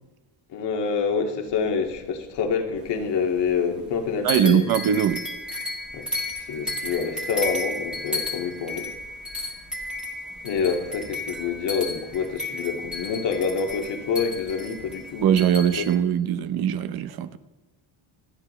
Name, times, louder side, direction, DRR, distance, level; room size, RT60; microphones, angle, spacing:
voice 1, 0.5-4.6 5.9-6.1 6.4-8.9 10.4-15.4 15.7-15.8, left 5 dB, 60° left, 3 dB, 2.2 m, -27 dB
sound 1, 1.5-3.0 3.3-4.0 4.3-16.0, left 2 dB, ahead, 1.7 m, -33 dB
voice 2, 4.2-5.2 15.2-17.4, right 9 dB, 50° right, 12 dB, 0.9 m, -21 dB
27.5 x 9.9 x 3.3 m, 1.2 s
cardioid pair, 170°, 46 cm